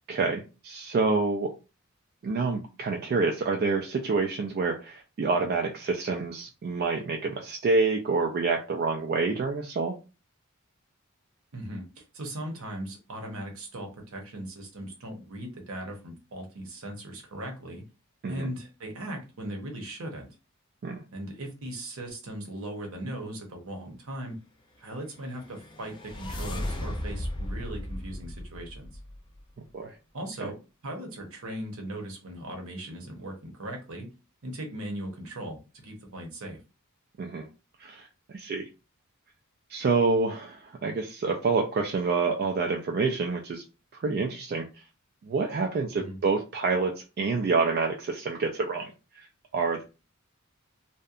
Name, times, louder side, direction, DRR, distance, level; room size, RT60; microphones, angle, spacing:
voice 1, 0.1-1.5 2.2-9.9 18.2-18.5 20.8-21.0 29.7-29.9 30.4-30.5 37.2-37.5 37.8-38.0 38.3-38.7 39.7-43.6 43.9-44.7 45.2-49.3 49.5-49.8, right 4 dB, 45° right, 2 dB, 0.3 m, -27 dB
voice 2, 11.5-17.8 18.3-20.3 21.1-24.4 24.8-28.9 30.1-30.6 30.8-34.1 34.4-36.6 45.9-46.2, right 1 dB, 70° right, 2 dB, 0.8 m, -38 dB
sound 1, 25.2-29.4, left 1 dB, 20° left, 0.4 m, -36 dB
2.7 x 2.1 x 2.4 m, 0.30 s
head